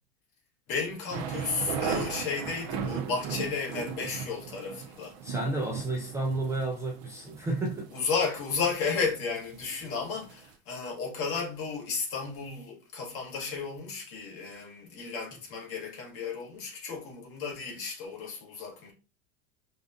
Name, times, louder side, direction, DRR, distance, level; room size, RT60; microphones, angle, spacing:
voice 1, 0.7-5.1 7.9-18.9, left 5 dB, 40° left, 1.6 m, -33 dB
sound 1, 1.1-10.5, right 7 dB, 50° right, 0.7 m, -37 dB
voice 2, 5.2-7.9 8.3-8.4, right 2 dB, 10° right, 0.4 m, -31 dB
5.0 x 2.4 x 2.7 m
supercardioid pair, 140°, 34 cm